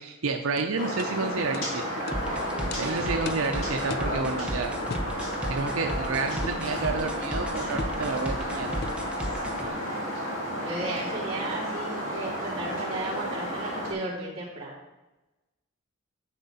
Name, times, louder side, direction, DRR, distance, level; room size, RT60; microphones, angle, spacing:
voice 1, 0.0-2.2 2.8-4.7 5.5-8.7, right 4 dB, 80° right, 4 dB, 0.6 m, -30 dB
sound 1, 0.6-0.7 1.0-1.1 1.5-1.7 2.1-2.2 2.7-2.8 3.3-3.5 3.9-4.1 4.9-5.1 6.4-6.7 7.8-8.0 8.8-9.1, left 4 dB, 50° left, 0.4 m, -37 dB
sound 2, 0.8-13.9, equal, 70° left, 3.4 m, -32 dB
sound 3, 2.1-9.7, right 1 dB, 5° right, 0.9 m, -34 dB
voice 2, 2.8-3.2 9.6-9.9 10.6-14.7, right 2 dB, 30° right, -7 dB, 3.6 m, -35 dB
10.5 x 7.4 x 4.2 m, 1.0 s
head